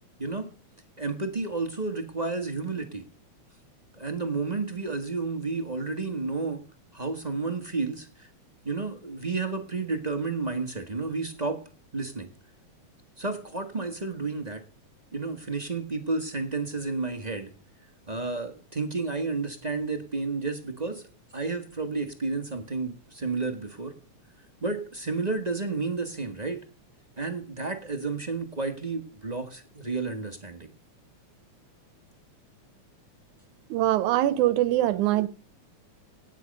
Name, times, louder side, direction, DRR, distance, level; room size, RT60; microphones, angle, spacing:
voice 1, 1.0-3.0 4.0-6.6 6.9-8.3 8.6-11.6 11.9-12.3 13.2-14.6 15.1-17.5 18.1-21.0 21.3-23.9 24.6-26.6 27.2-30.7, right 3 dB, 40° right, 0.6 m, -31 dB
voice 2, 33.7-35.3, right 14 dB, 85° right, 2.2 m, -23 dB
17.5 x 9.2 x 5.3 m
omnidirectional pair, 3.4 m